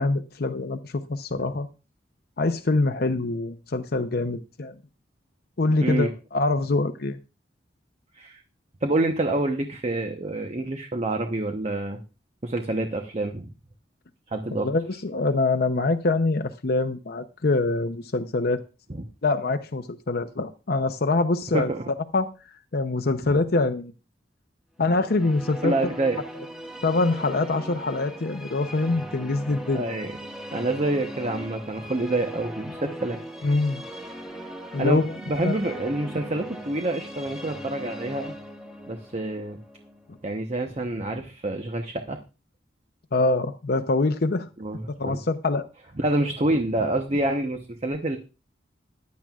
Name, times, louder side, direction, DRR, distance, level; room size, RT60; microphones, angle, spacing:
voice 1, 0.0-1.7 2.4-4.7 5.6-7.2 14.6-18.6 19.2-21.7 22.1-22.3 22.7-23.9 24.8-25.7 26.8-29.9 33.4-33.8 34.7-35.5 43.1-44.5 45.0-45.7, left 3 dB, 55° left, 0.7 m, -24 dB
voice 2, 5.8-6.1 8.1-8.4 8.8-12.0 12.4-13.5 14.3-14.7 18.9-19.0 21.5-21.9 23.2-23.3 25.6-26.2 29.7-30.2 30.5-33.6 34.7-38.3 38.9-39.6 40.2-42.2 44.6-45.2 46.0-48.2, right 2 dB, 35° right, 0.9 m, -27 dB
sound 1, 24.8-40.9, equal, 5° right, 1.6 m, -39 dB
15.0 x 10.5 x 2.4 m
head